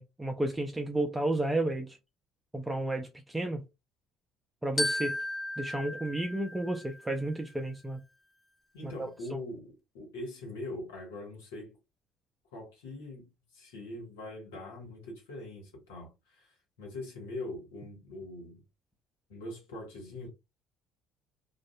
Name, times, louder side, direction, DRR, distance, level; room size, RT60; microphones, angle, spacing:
voice 1, 0.0-2.0 2.5-3.6 4.6-5.2 5.6-8.0 8.8-9.1, right 1 dB, 10° right, 0.4 m, -32 dB
Glockenspiel, 4.8-7.3, left 1 dB, 25° left, 1.2 m, -35 dB
voice 2, 8.7-11.8 12.5-18.6 19.3-20.3, left 2 dB, 90° left, 1.3 m, -42 dB
2.5 x 2.4 x 2.2 m
hypercardioid pair, 65°, 0 cm